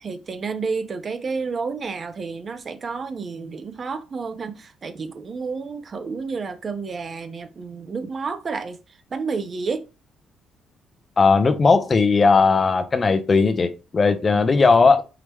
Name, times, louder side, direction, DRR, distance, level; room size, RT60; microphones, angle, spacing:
voice 1, 0.0-8.8 9.1-9.8 14.3-14.4, right 4 dB, 45° right, 0.7 m, -30 dB
voice 2, 11.2-15.0, left 4 dB, 35° left, 0.7 m, -17 dB
4.8 x 2.9 x 3.4 m
cardioid pair, 90°, 0 cm